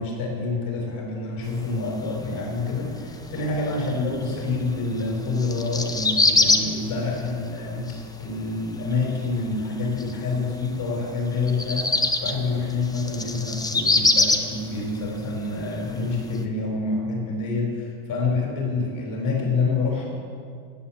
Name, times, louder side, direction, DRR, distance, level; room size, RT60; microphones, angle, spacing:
voice 1, 0.0-7.9 8.2-11.9 12.2-20.1, left 3 dB, 45° left, 0 dB, 4.5 m, -27 dB
sound 1, 1.4-16.4, left 2 dB, 10° left, 0.6 m, -26 dB
17.0 x 8.5 x 7.2 m, 2.3 s
cardioid pair, 145°, 48 cm